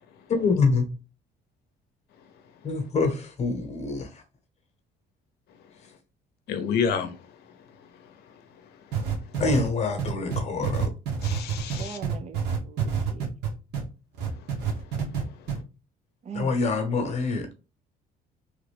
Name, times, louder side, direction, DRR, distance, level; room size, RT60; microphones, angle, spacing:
voice 1, 0.3-0.9 2.6-4.2 9.4-10.9 16.3-17.6, left 4 dB, 40° left, 1.0 m, -26 dB
voice 2, 6.5-7.1 11.2-12.0, left 7 dB, 75° left, 0.7 m, -28 dB
sound 1, 8.9-13.8 14.2-15.2 15.5-15.6, right 7 dB, 85° right, 1.2 m, -27 dB
voice 3, 11.7-13.3 16.2-16.5, right 6 dB, 40° right, 0.6 m, -40 dB
3.2 x 2.4 x 3.3 m
cardioid pair, 110°, 17 cm